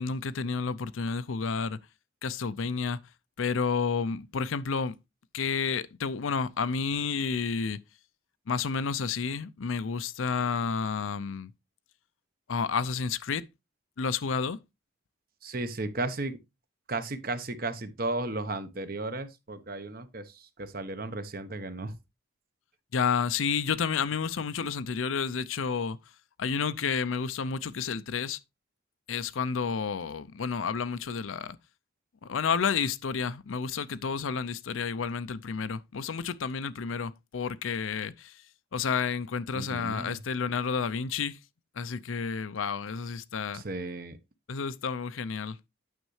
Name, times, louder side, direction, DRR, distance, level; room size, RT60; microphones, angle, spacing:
voice 1, 0.0-1.8 2.2-3.0 3.4-5.0 5.3-7.8 8.5-11.5 12.5-13.5 14.0-14.6 22.9-26.0 26.4-28.4 29.1-31.6 32.2-38.4 38.7-41.4 41.7-43.6 44.5-45.6, left 5 dB, 85° left, 0.5 m, -30 dB
voice 2, 15.4-16.4 16.9-22.0 39.5-40.2 43.5-44.2, right 2 dB, 45° right, 0.9 m, -34 dB
9.2 x 6.5 x 3.2 m
head